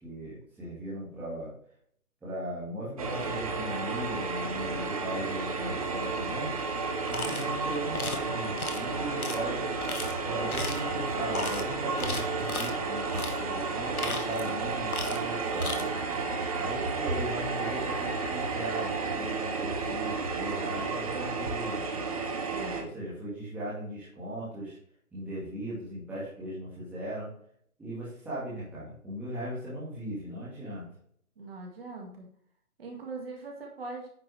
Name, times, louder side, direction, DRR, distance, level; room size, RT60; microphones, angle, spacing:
voice 1, 0.0-1.5 2.2-6.5 7.1-9.8 10.2-15.9 16.5-21.8 22.8-24.8 25.1-27.3 27.8-30.9, right 1 dB, 5° right, -10 dB, 2.1 m, -38 dB
sound 1, 3.0-22.8, right 4 dB, 25° right, 0.9 m, -32 dB
sound 2, 7.1-7.5 7.9-8.2 8.6-8.8 9.2-9.4 9.8-10.1 10.5-10.9 11.3-11.6 12.0-12.7 13.1-13.4 13.8-14.6 14.9-15.3 15.5-15.8, left 4 dB, 75° left, 1.7 m, -36 dB
voice 2, 22.5-22.9 31.4-32.3 32.8-34.1, right 3 dB, 40° right, 0 dB, 2.3 m, -41 dB
9.6 x 5.9 x 3.4 m, 0.64 s
figure-of-eight pair, 150°, 45 cm